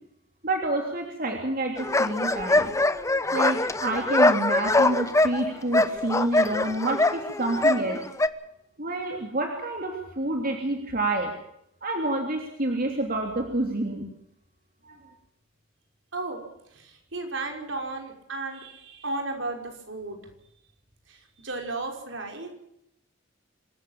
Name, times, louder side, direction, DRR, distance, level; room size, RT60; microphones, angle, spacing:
voice 1, 0.4-2.7 3.3-8.0 8.8-11.3 11.8-14.1 14.8-15.0, right 2 dB, 50° right, 2 dB, 3.2 m, -28 dB
sound 1, 1.8-8.3, left 2 dB, 15° left, 1.0 m, -23 dB
voice 2, 16.1-16.4 16.7-20.2 21.1-22.5, right 2 dB, 70° right, 3 dB, 5.6 m, -34 dB
26.5 x 14.5 x 7.4 m, 0.77 s
head